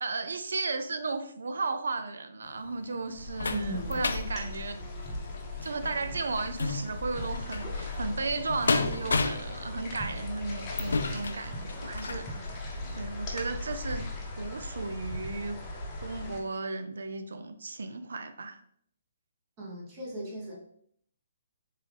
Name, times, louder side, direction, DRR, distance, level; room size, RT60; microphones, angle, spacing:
voice 1, 0.0-4.8 5.6-12.4 13.0-14.1 14.4-15.6 16.0-18.6, right 3 dB, 80° right, 9 dB, 0.5 m, -35 dB
sound 1, 2.4-12.3 12.8-13.0 13.3-13.4, left 3 dB, 80° left, 0.4 m, -34 dB
sound 2, 3.1-16.4, left 2 dB, 20° left, 0.9 m, -38 dB
voice 2, 3.5-4.0 19.6-20.6, right 1 dB, 30° right, -3 dB, 1.4 m, -37 dB
3.7 x 3.1 x 3.3 m, 0.65 s
hypercardioid pair, 155°, 0 cm